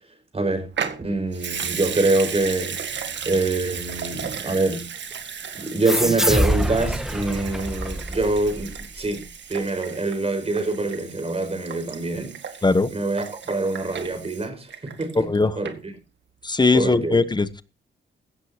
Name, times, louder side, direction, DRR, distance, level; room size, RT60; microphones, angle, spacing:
voice 1, 0.3-0.7 1.0-2.8 3.3-4.9 5.5-12.4 12.9-15.9 16.7-17.2, right 2 dB, 30° right, 5.2 m, -25 dB
Water tap faucet / Sink (filling or washing) / Liquid, 0.7-15.4 15.6-15.7, right 7 dB, 60° right, 1.9 m, -35 dB
sound 1, 5.8-9.1, equal, ahead, 1.6 m, -25 dB
voice 2, 15.2-15.5 16.4-17.6, left 3 dB, 20° left, 1.0 m, -19 dB
16.5 x 15.0 x 2.9 m
cardioid pair, 110°, 20 cm